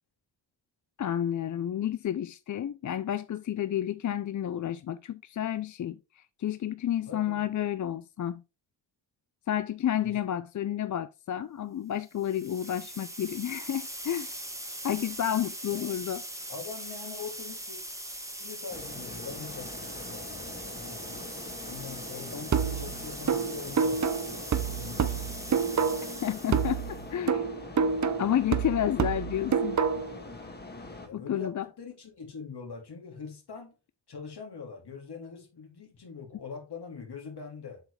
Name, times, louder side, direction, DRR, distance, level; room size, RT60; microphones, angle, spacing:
voice 1, 1.0-8.4 9.5-14.3 14.8-16.2 26.2-27.4 28.2-29.8 31.1-31.7, left 10 dB, 45° left, 0.4 m, -31 dB
voice 2, 7.1-7.4 10.0-10.3 15.7-15.9 16.5-17.8 18.4-19.7 20.1-21.2 21.6-25.9 31.0-33.7 34.1-37.8, left 5 dB, 60° left, 2.6 m, -43 dB
sound 1, 12.1-27.1, right 1 dB, 5° right, 1.4 m, -41 dB
sound 2, 18.7-31.1, left 2 dB, 20° left, 1.6 m, -43 dB
sound 3, 22.5-26.2 26.5-30.2, right 6 dB, 40° right, 0.7 m, -28 dB
7.6 x 4.9 x 3.2 m
cardioid pair, 70°, 43 cm